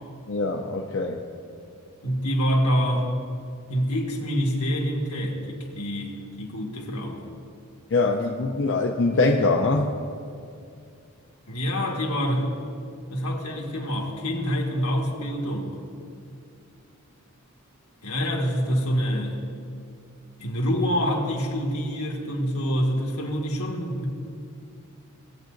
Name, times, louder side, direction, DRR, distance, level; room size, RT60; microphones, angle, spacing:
voice 1, 0.3-1.2 7.9-10.0, left 3 dB, 55° left, 1 dB, 0.5 m, -23 dB
voice 2, 2.0-3.1 3.7-6.1 6.4-7.2 11.5-12.5 13.1-15.8 18.0-19.4 20.4-24.1, equal, 80° left, -1 dB, 1.6 m, -26 dB
18.0 x 8.0 x 2.6 m, 2.4 s
head